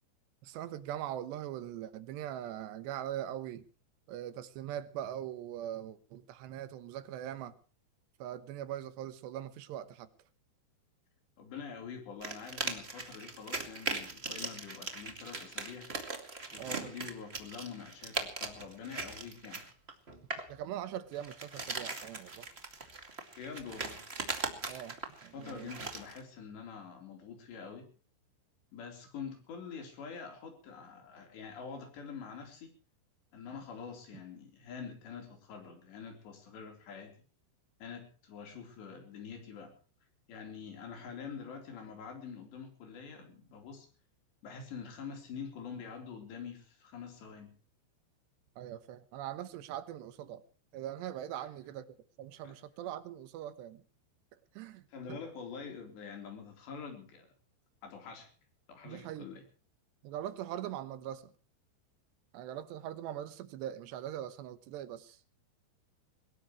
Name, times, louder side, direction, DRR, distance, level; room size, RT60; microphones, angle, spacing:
voice 1, 0.4-3.7 4.1-7.5 8.2-10.1 16.5-16.9 20.5-22.5 24.7-25.7 48.6-50.4 50.7-53.8 54.5-55.2 58.8-59.3 60.0-61.3 62.3-65.2, right 11 dB, 75° right, 3.1 m, -41 dB
voice 2, 11.4-15.9 16.5-19.7 23.4-24.0 25.3-27.9 28.7-32.7 33.3-37.2 37.8-39.7 40.3-43.9 44.4-47.5 51.4-51.5 52.4-52.6 54.9-57.3 57.8-58.3 58.7-59.4, left 6 dB, 65° left, 5.9 m, -46 dB
sound 1, 12.2-20.5 21.1-26.2, right 3 dB, 35° right, 0.9 m, -40 dB
22.5 x 20.0 x 3.1 m
omnidirectional pair, 5.4 m